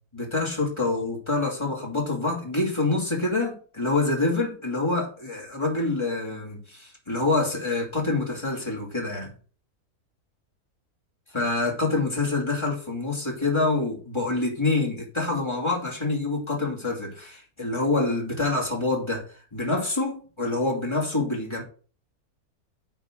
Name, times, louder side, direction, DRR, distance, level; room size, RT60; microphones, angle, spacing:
voice 1, 0.1-9.3 11.3-19.2 19.5-21.6, left 2 dB, 20° left, 2.7 m, -26 dB
8.9 x 3.8 x 6.3 m
omnidirectional pair, 1.6 m